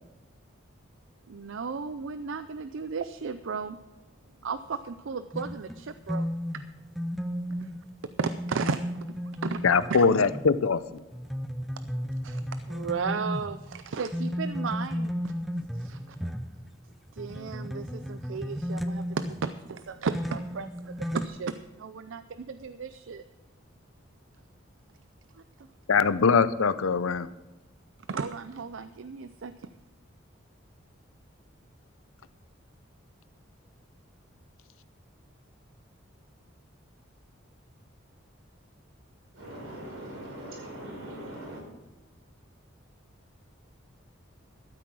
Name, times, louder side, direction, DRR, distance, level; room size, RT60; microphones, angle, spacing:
voice 1, 1.3-3.8 4.4-6.3 7.6-7.7 8.2-8.8 9.4-9.6 9.9-10.1 12.2-12.4 12.7-15.3 15.7-16.2 17.1-23.2 25.3-25.4 26.0-26.2 28.1-29.7, right 5 dB, 70° right, 12 dB, 0.5 m, -34 dB
sound 1, 5.3-10.7 11.1-16.9 17.2-19.8 20.1-21.3, equal, ahead, 0.5 m, -34 dB
voice 2, 9.6-10.8 25.9-27.3, left 5 dB, 90° left, 15 dB, 0.6 m, -22 dB
voice 3, 39.3-41.6, right 1 dB, 90° right, -1 dB, 5.1 m, -41 dB
13.0 x 8.4 x 6.2 m, 1.2 s
head